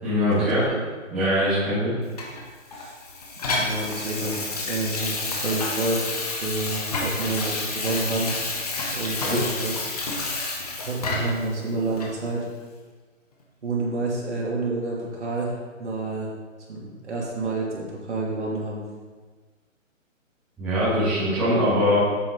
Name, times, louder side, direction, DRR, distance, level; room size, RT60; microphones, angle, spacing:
voice 1, 0.0-0.6 1.1-1.9 9.2-9.4 20.6-22.0, equal, 5° right, -14 dB, 1.8 m, -22 dB
Water tap faucet / Sink (filling or washing), 2.2-11.5 12.0-12.1, left 3 dB, 30° left, 1.2 m, -29 dB
voice 2, 3.6-8.3 8.9-9.9 10.8-12.5 13.6-16.3 16.7-18.8, right 2 dB, 60° right, -3 dB, 2.8 m, -29 dB
9.1 x 7.7 x 4.0 m, 1.4 s
hypercardioid pair, 165°, 39 cm